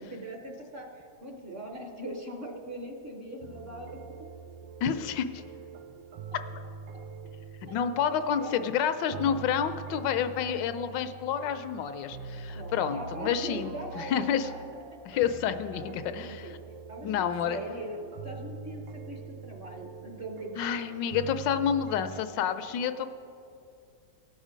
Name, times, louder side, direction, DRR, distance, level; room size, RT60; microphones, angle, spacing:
voice 1, 0.0-4.3 7.7-7.8 8.1-8.6 9.1-9.4 12.5-14.8 15.7-16.5 16.9-20.9, right 1 dB, 45° right, 1 dB, 0.9 m, -41 dB
sound 1, 3.4-22.2, right 6 dB, 85° right, 1.3 m, -44 dB
voice 2, 4.8-5.4 7.7-14.5 15.0-16.5 17.0-17.6 20.6-23.1, left 8 dB, 80° left, 10 dB, 1.2 m, -29 dB
17.5 x 6.4 x 5.0 m, 2.6 s
omnidirectional pair, 2.0 m